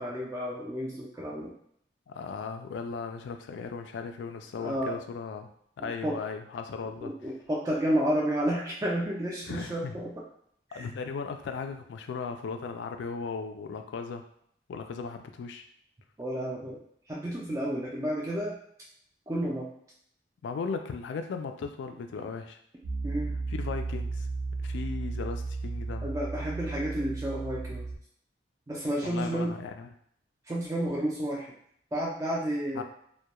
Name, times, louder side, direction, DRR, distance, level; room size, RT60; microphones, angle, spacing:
voice 1, 0.0-1.5 4.6-5.0 5.8-6.2 7.0-10.2 10.7-10.9 16.2-18.6 19.3-19.7 23.0-23.4 26.0-27.9 28.7-29.6 30.5-31.5 31.9-32.8, right 1 dB, 15° right, -5 dB, 0.3 m, -31 dB
voice 2, 2.1-5.5 5.8-7.1 9.5-10.0 10.7-14.2 14.7-15.7 20.4-22.6 23.5-24.3 24.6-26.1 29.0-29.9 32.7-32.8, left 5 dB, 80° left, 6 dB, 0.3 m, -37 dB
Piano, 22.8-28.0, right 3 dB, 75° right, 0.6 m, -34 dB
2.2 x 2.1 x 2.9 m, 0.67 s
head